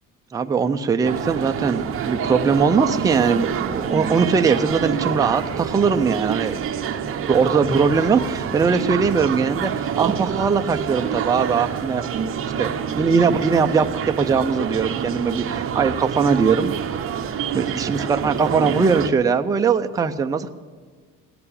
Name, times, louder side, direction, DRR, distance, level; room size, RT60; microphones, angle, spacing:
voice 1, 0.3-6.6 7.2-12.0 12.6-16.8 17.5-20.5, right 5 dB, 10° right, 6 dB, 0.4 m, -20 dB
sound 1, 1.0-19.1, right 8 dB, 40° right, 0.8 m, -27 dB
17.0 x 6.8 x 8.6 m, 1.6 s
cardioid pair, 165°, 34 cm